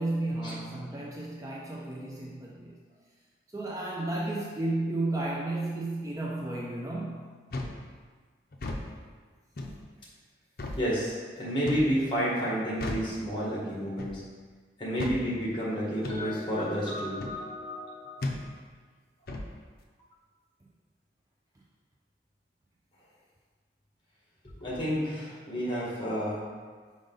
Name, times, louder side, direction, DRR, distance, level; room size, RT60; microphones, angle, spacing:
voice 1, 0.0-2.8 3.5-7.4, right 2 dB, 20° right, -3 dB, 0.4 m, -33 dB
sound 1, 7.5-7.8 8.5-8.9 9.6-9.8 10.6-10.8 11.7-11.9 12.8-13.1 14.0-14.2 15.0-15.2 16.0-16.2 17.2-17.4 18.2-18.4 19.3-19.5, left 2 dB, 55° left, 0.6 m, -34 dB
voice 2, 10.8-14.2 14.8-18.5 24.6-26.4, equal, 25° left, -6 dB, 1.6 m, -31 dB
5.2 x 5.1 x 3.9 m, 1.5 s
head